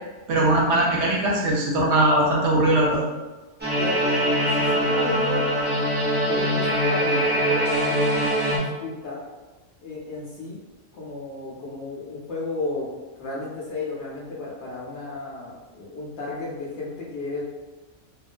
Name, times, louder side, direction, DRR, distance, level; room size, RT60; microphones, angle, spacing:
voice 1, 0.3-3.0, right 1 dB, 70° right, -3 dB, 0.8 m, -20 dB
sound 1, 3.6-8.6, equal, 15° right, 0.4 m, -23 dB
voice 2, 3.8-5.9 6.3-9.2 9.8-10.6 10.9-12.9 13.2-17.4, left 2 dB, 70° left, -6 dB, 0.8 m, -33 dB
2.3 x 2.2 x 2.4 m, 1.2 s
omnidirectional pair, 1.3 m